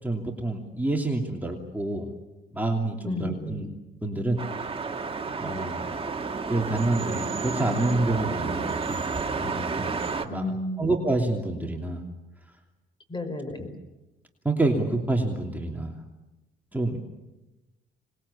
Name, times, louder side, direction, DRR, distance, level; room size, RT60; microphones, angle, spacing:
voice 1, 0.0-2.1 2.5-3.8 4.0-4.4 5.4-5.9 6.5-12.0 13.6-13.7 14.4-16.0 16.7-17.0, right 2 dB, 10° right, 1 dB, 3.0 m, -28 dB
voice 2, 3.0-3.6 10.3-10.9 13.1-13.7, left 1 dB, 25° left, 9 dB, 5.2 m, -32 dB
sound 1, 4.4-10.2, right 4 dB, 30° right, 2.1 m, -31 dB
25.5 x 21.0 x 8.6 m, 1.0 s
cardioid pair, 90°, 20 cm